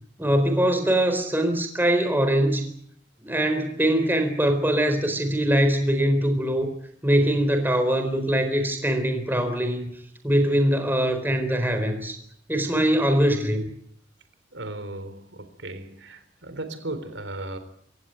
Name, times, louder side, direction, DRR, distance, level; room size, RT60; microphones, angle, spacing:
voice 1, 0.2-2.7 3.2-6.7 7.0-9.9 10.2-12.2 12.5-13.7, right 1 dB, 10° right, 7 dB, 4.1 m, -22 dB
voice 2, 14.5-17.6, right 2 dB, 80° right, 10 dB, 3.8 m, -36 dB
27.0 x 16.0 x 9.5 m, 0.67 s
head